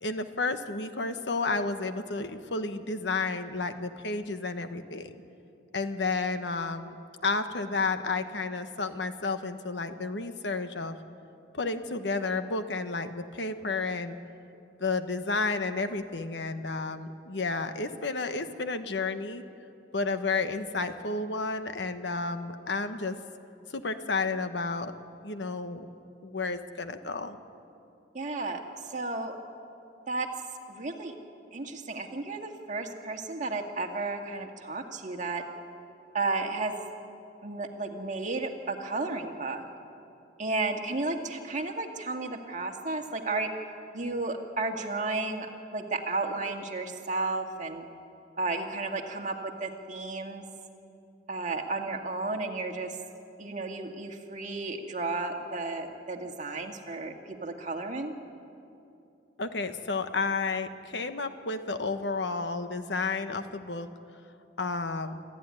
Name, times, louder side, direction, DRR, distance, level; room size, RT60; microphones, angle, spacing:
voice 1, 0.0-5.1 5.7-7.0 7.2-11.0 11.5-14.2 14.8-19.4 19.9-23.2 23.7-24.9 25.2-25.9 26.2-27.4 59.4-63.9 64.6-65.1, left 3 dB, 75° left, 9 dB, 1.2 m, -31 dB
voice 2, 28.1-29.3 30.1-30.3 30.7-31.1 31.5-35.4 36.1-36.7 37.4-39.6 40.4-43.5 43.9-45.5 45.7-47.9 48.4-50.5 51.3-53.0 53.4-58.1, right 3 dB, 45° right, 2 dB, 2.0 m, -33 dB
26.0 x 14.0 x 9.8 m, 2.7 s
head